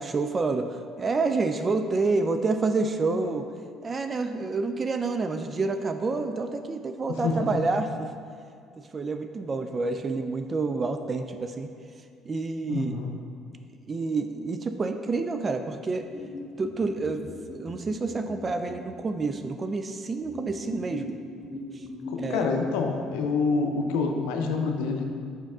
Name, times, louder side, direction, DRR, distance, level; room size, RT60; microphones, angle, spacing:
voice 1, 0.0-3.5 3.8-8.1 8.9-11.7 12.3-13.0 13.9-16.1 16.6-21.2 21.7-21.8 22.2-22.5, right 3 dB, 35° right, 7 dB, 0.3 m, -28 dB
voice 2, 7.2-7.6 12.7-13.1 22.1-25.1, left 4 dB, 80° left, 3 dB, 0.5 m, -27 dB
sound 1, 16.0-19.0 20.2-22.5, left 2 dB, 20° left, 0.8 m, -39 dB
5.2 x 5.0 x 3.6 m, 2.2 s
hypercardioid pair, 65°, 0 cm